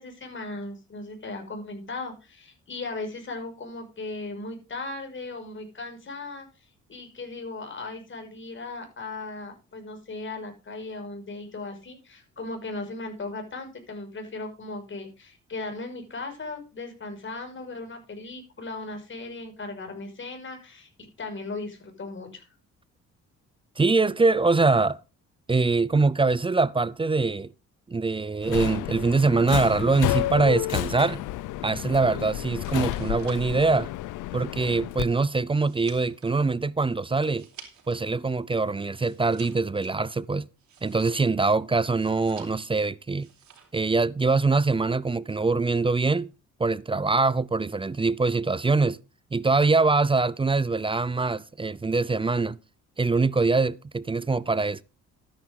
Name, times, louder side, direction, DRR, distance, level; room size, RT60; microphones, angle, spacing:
voice 1, 0.0-6.5 6.9-22.5, left 3 dB, 40° left, 5.9 m, -37 dB
voice 2, 23.8-25.0 25.5-27.5 27.9-31.2 31.6-33.9 34.3-37.5 37.9-40.5 40.8-43.3 43.7-46.3 46.6-49.0 49.3-52.6 53.0-54.8, right 3 dB, 15° right, 0.5 m, -23 dB
Subway metro underground, 28.4-35.0, left 15 dB, 85° left, 0.7 m, -31 dB
sound 1, 32.7-38.1 38.4-41.4 41.9-42.8 43.1-43.8 44.1-44.5, right 7 dB, 70° right, 4.0 m, -52 dB
13.0 x 10.5 x 3.7 m
cardioid pair, 90°, 30 cm